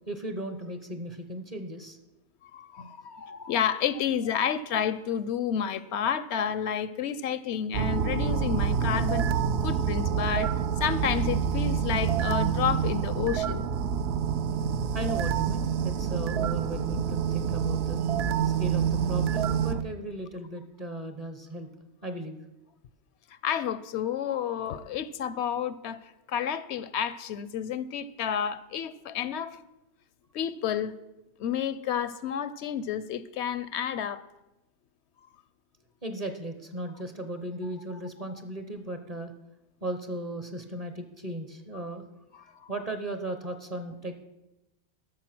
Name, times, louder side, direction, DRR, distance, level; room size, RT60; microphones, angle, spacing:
voice 1, 0.0-2.0 14.9-18.1 18.4-21.7 22.0-22.4 36.0-39.3 39.8-42.0 42.4-44.2, right 1 dB, 35° right, 7 dB, 0.9 m, -36 dB
voice 2, 2.4-9.3 9.6-13.7 23.4-29.6 30.3-31.0 31.4-34.2 42.3-42.7, left 8 dB, 75° left, 15 dB, 0.8 m, -30 dB
sound 1, 7.7-19.8, right 7 dB, 70° right, 0.8 m, -27 dB
13.0 x 6.6 x 6.0 m, 0.96 s
omnidirectional pair, 1.2 m